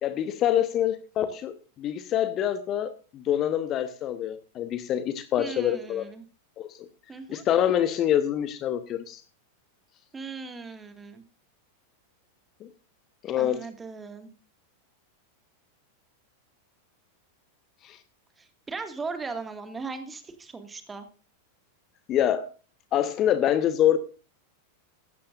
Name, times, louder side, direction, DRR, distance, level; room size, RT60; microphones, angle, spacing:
voice 1, 0.0-6.1 6.6-6.9 7.3-9.2 12.6-12.7 13.2-13.6 17.8-18.0 22.1-22.5 22.9-24.0, left 10 dB, 35° left, 12 dB, 1.1 m, -26 dB
voice 2, 5.4-6.2 7.1-7.4 10.1-11.2 13.4-14.3 18.4-21.1, right 4 dB, 15° right, 8 dB, 2.0 m, -38 dB
16.0 x 12.5 x 2.6 m, 0.37 s
figure-of-eight pair, 90°, 0 cm